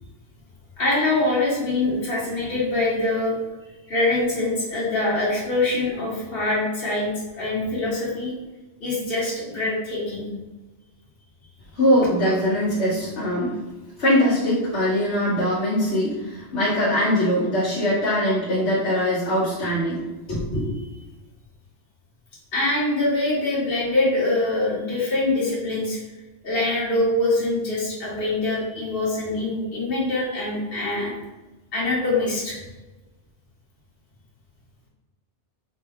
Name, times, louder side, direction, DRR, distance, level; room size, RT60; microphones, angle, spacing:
voice 1, 0.8-3.4 3.9-8.3 8.8-10.3 22.5-26.0 26.4-31.1 31.7-32.6, left 2 dB, 55° left, -6 dB, 1.6 m, -24 dB
voice 2, 11.8-13.6 14.0-20.0 20.3-20.7, equal, 70° left, -10 dB, 1.4 m, -22 dB
5.1 x 2.2 x 3.5 m, 1.1 s
omnidirectional pair, 1.2 m